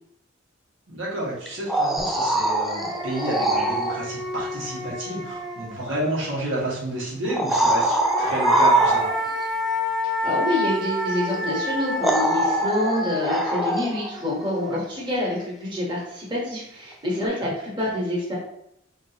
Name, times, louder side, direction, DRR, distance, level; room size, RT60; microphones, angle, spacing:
voice 1, 0.9-9.1 14.6-14.8 17.4-17.5, right 1 dB, 75° right, -5 dB, 1.6 m, -30 dB
sound 1, 1.5-4.0 5.9-6.0 7.2-9.4 11.3-11.4 12.0-14.1 17.2-17.3, right 1 dB, ahead, 0.3 m, -23 dB
sound 2, 2.0-2.1 2.4-6.1 7.7-15.0, left 1 dB, 50° right, 1.8 m, -29 dB
voice 2, 10.0-18.3, left 1 dB, 25° right, -5 dB, 1.3 m, -27 dB
5.1 x 3.6 x 2.9 m, 0.80 s
head